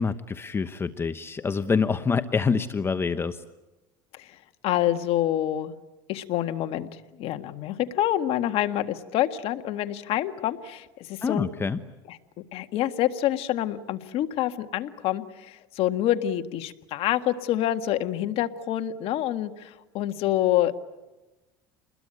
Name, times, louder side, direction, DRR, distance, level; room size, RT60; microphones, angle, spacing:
voice 1, 0.0-3.4 11.2-11.8, left 5 dB, 20° left, 11 dB, 0.9 m, -26 dB
voice 2, 4.6-5.7 6.1-6.9 7.2-11.5 12.1-12.2 12.5-20.8, left 12 dB, 60° left, 8 dB, 1.7 m, -27 dB
28.5 x 21.0 x 9.1 m, 1.1 s
supercardioid pair, 115°, 11 cm